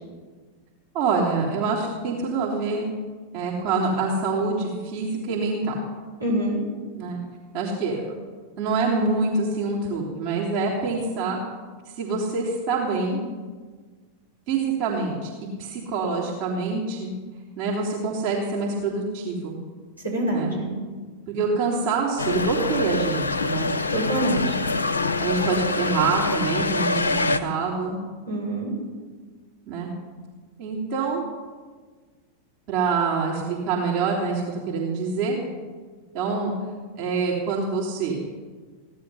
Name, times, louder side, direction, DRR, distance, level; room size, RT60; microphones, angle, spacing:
voice 1, 0.9-2.9 3.3-5.8 7.0-7.2 7.5-8.1 8.6-11.4 12.0-13.2 14.5-15.3 15.6-17.1 17.6-19.5 20.3-20.5 21.3-23.7 25.2-28.0 29.7-29.9 30.6-31.2 32.7-35.4 36.1-36.5 37.0-38.2, right 4 dB, 45° right, -4 dB, 3.3 m, -25 dB
voice 2, 6.2-6.6 20.0-20.7 23.9-24.5 28.3-28.7, right 1 dB, 90° right, -6 dB, 5.7 m, -25 dB
sound 1, 22.2-27.4, left 3 dB, 70° left, 0.8 m, -25 dB
16.5 x 11.5 x 5.6 m, 1.5 s
figure-of-eight pair, 90°, 0 cm